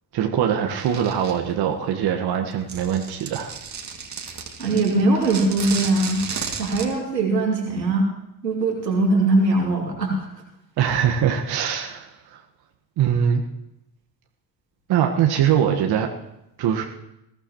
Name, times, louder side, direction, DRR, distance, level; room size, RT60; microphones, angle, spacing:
voice 1, 0.1-3.5 10.8-12.4 13.0-13.4 14.9-16.1 16.6-16.8, right 9 dB, 50° right, 3 dB, 1.5 m, -22 dB
sound 1, 0.7-1.5 2.5-6.9, right 5 dB, 35° right, 2.3 m, -33 dB
voice 2, 4.6-6.2 6.6-8.1 8.4-10.3, right 2 dB, 90° right, -1 dB, 2.8 m, -21 dB
20.5 x 15.5 x 3.0 m, 0.86 s
figure-of-eight pair, 55°, 48 cm